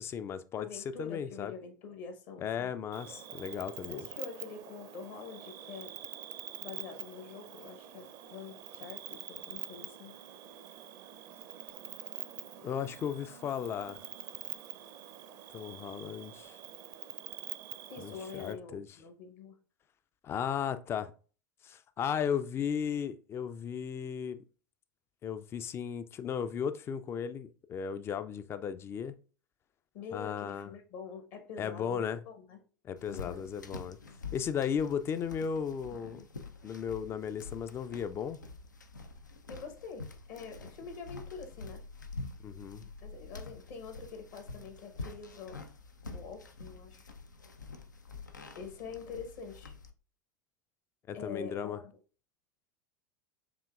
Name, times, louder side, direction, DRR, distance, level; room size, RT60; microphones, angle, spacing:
voice 1, 0.0-1.5 2.4-4.1 12.6-14.0 15.5-16.6 18.0-18.9 20.2-21.1 21.6-24.4 25.2-29.2 30.1-30.7 31.6-32.2 32.8-34.0 34.3-36.2 36.6-38.4 42.4-42.8 51.1-51.8, left 7 dB, 25° left, 0.4 m, -35 dB
voice 2, 0.6-2.7 3.9-6.0 6.6-10.2 17.9-19.6 29.9-32.6 33.1-33.5 39.5-41.8 43.0-45.7 46.1-47.1 48.6-49.7 51.1-51.9, left 5 dB, 50° left, 1.0 m, -45 dB
Cricket, 2.9-18.5, right 11 dB, 45° right, 0.5 m, -46 dB
sound 1, 33.0-49.9, left 3 dB, 85° left, 0.5 m, -47 dB
7.0 x 2.8 x 2.3 m
figure-of-eight pair, 85°, 10 cm